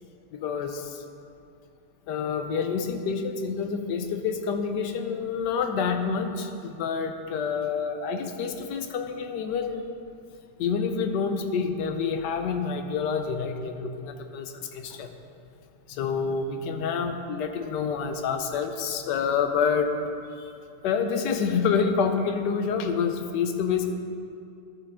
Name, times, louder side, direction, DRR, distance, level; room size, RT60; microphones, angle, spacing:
voice 1, 0.3-1.0 2.1-9.9 10.6-15.1 15.9-19.9 20.4-20.5 20.8-23.9, left 6 dB, 85° left, 6 dB, 1.3 m, -28 dB
12.0 x 6.8 x 3.6 m, 2.5 s
omnidirectional pair, 1.8 m